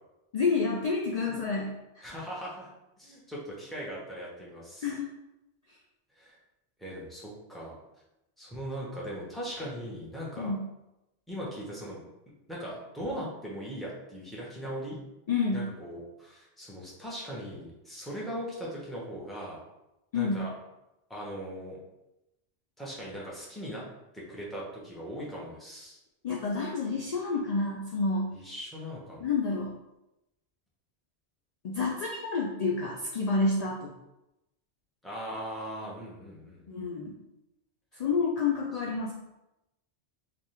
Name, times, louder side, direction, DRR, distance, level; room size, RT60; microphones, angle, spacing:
voice 1, 0.3-2.0 4.8-5.1 10.4-10.6 15.3-15.7 20.1-20.5 26.2-28.3 29.2-29.7 31.6-33.9 36.7-37.2 38.0-39.1, left 4 dB, 65° left, -2 dB, 0.4 m, -29 dB
voice 2, 2.0-2.7 3.0-4.9 6.2-6.4 6.8-7.7 8.4-10.5 11.3-12.0 12.5-15.0 15.5-19.6 20.1-20.5 21.1-21.8 22.8-23.9 24.1-26.0 28.3-29.3 35.0-36.8 37.9-38.0, equal, ahead, -5 dB, 0.8 m, -39 dB
3.4 x 2.5 x 4.2 m, 0.92 s
omnidirectional pair, 1.2 m